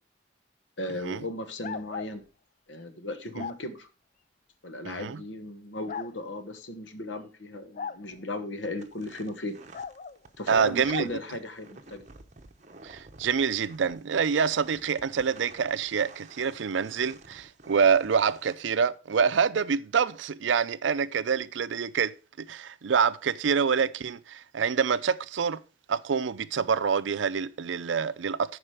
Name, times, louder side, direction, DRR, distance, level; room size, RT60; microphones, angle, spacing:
voice 1, 0.8-2.2 2.7-3.9 4.6-9.6 10.4-12.1, left 1 dB, 80° left, 1.1 m, -36 dB
sound 1, 1.6-2.1 3.4-3.6 4.9-5.0 5.9-6.1 7.8-8.0 9.7-10.2 10.9-11.1, left 6 dB, 45° left, 0.4 m, -37 dB
voice 2, 4.8-5.2 10.5-11.1 12.8-25.6 25.9-28.6, right 6 dB, 85° right, 0.5 m, -26 dB
sound 2, 8.8-18.6, right 3 dB, 40° right, 0.8 m, -51 dB
10.0 x 4.9 x 4.8 m
head